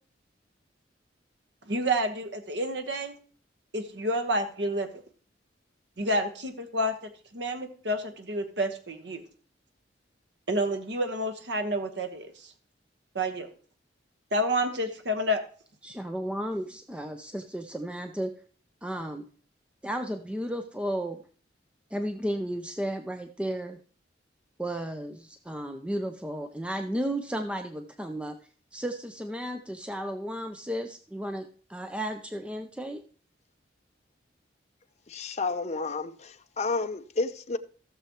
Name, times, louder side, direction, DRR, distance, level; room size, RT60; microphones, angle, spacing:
voice 1, 1.7-3.2 3.7-4.9 6.0-6.9 7.3-9.2 10.5-12.5 13.1-13.5 14.3-15.4, equal, 65° right, 1.2 m, -29 dB
voice 2, 15.8-18.3 18.8-19.3 19.8-21.2 21.9-23.8 24.6-28.4 28.7-33.0, equal, 5° right, 0.5 m, -33 dB
voice 3, 35.1-37.6, left 3 dB, 40° left, 0.7 m, -31 dB
16.5 x 6.8 x 3.0 m
head